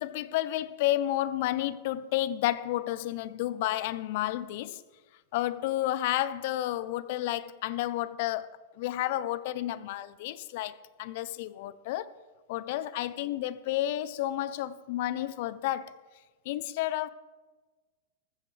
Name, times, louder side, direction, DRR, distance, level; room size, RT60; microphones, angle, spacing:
voice 1, 0.0-4.8 5.3-12.1 12.5-15.9 16.5-17.1, left 14 dB, 60° left, 0.6 m, -31 dB
14.5 x 14.0 x 3.3 m
hypercardioid pair, 125°, 0 cm